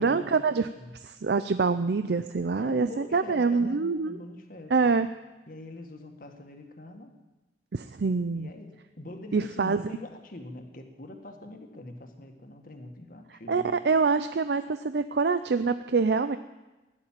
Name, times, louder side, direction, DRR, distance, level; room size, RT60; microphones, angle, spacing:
voice 1, 0.0-0.7 1.0-4.2 4.7-5.1 7.7-8.5 9.3-9.8 13.5-16.4, right 4 dB, 65° right, 11 dB, 0.5 m, -25 dB
voice 2, 2.6-4.9 5.5-7.1 8.3-13.7, left 1 dB, 50° left, 4 dB, 1.9 m, -43 dB
16.0 x 11.5 x 7.5 m, 1.1 s
head